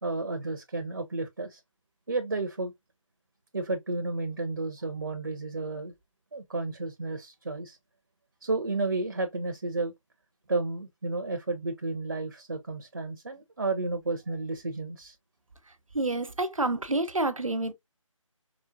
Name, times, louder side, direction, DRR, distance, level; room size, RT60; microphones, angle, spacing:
voice 1, 0.0-1.6 2.1-2.7 3.5-5.9 6.3-7.8 8.4-9.9 10.5-15.1, right 3 dB, 40° right, 0.6 m, -32 dB
voice 2, 15.9-17.7, right 2 dB, 75° right, 0.9 m, -28 dB
4.8 x 2.0 x 2.6 m
figure-of-eight pair, 160°, 17 cm